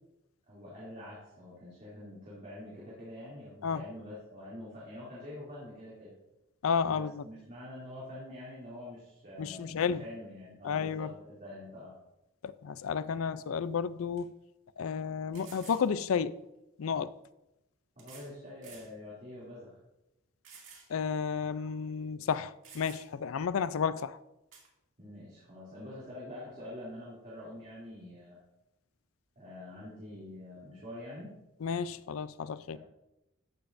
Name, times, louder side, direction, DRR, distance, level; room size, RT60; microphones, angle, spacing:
voice 1, 0.5-6.1 6.9-11.9 18.0-19.8 25.0-28.4 29.4-31.3, left 1 dB, 40° right, 2.7 m, -46 dB
voice 2, 6.6-7.2 9.4-10.0 10.6-11.1 12.4-14.3 14.8-16.4 16.8-17.1 20.9-24.2 31.6-32.8, left 6 dB, 85° left, 0.4 m, -32 dB
sound 1, 13.6-13.7 14.2-14.3 15.3-15.9 17.0-17.1 18.0-18.3 18.6-18.9 19.4-19.5 20.4-20.9 21.2-21.3 22.2-22.3 22.6-23.3 24.5-24.7, right 5 dB, 70° right, 2.4 m, -52 dB
13.5 x 6.9 x 2.6 m
head